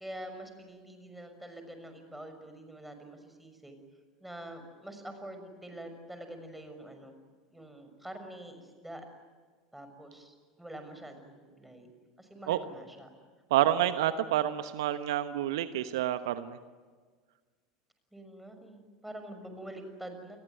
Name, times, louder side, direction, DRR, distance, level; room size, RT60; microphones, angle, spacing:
voice 1, 0.0-3.8 4.2-7.1 7.5-9.1 9.7-11.9 12.2-13.1 18.1-20.4, right 1 dB, 5° right, 7 dB, 6.3 m, -46 dB
voice 2, 13.5-16.6, right 12 dB, 70° right, 12 dB, 1.1 m, -28 dB
29.0 x 22.0 x 9.3 m, 1.5 s
figure-of-eight pair, 75°, 2 cm